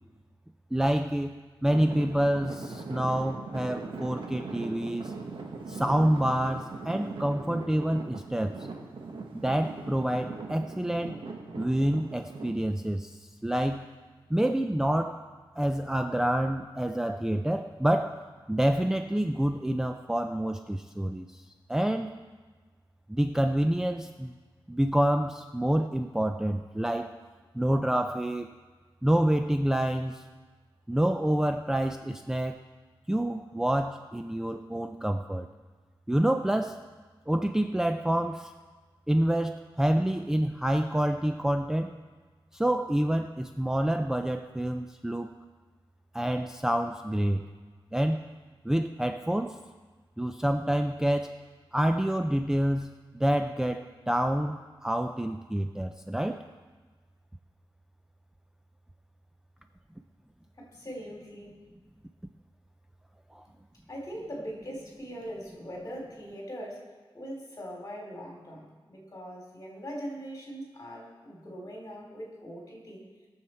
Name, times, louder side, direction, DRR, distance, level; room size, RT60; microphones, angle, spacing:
voice 1, 0.7-5.1 5.7-8.6 9.3-11.2 11.6-13.8 14.3-15.2 15.6-18.2 18.5-21.4 21.7-22.1 23.1-24.3 24.7-27.2 27.5-28.5 29.0-30.2 30.9-32.6 33.1-35.5 36.1-36.8 37.3-38.5 39.1-41.9 42.5-45.3 46.1-47.4 47.9-48.2 48.6-49.6 50.2-51.3 51.7-56.4 63.3-63.4, right 1 dB, 5° right, 6 dB, 0.4 m, -27 dB
Traffic noise roadway noise / Engine, 1.7-12.5, right 3 dB, 70° right, 1.5 m, -40 dB
voice 2, 60.6-61.7 63.5-63.6 63.9-73.1, equal, 35° left, -1 dB, 3.5 m, -41 dB
21.0 x 7.2 x 4.4 m, 1.4 s
wide cardioid pair, 120°, 9 cm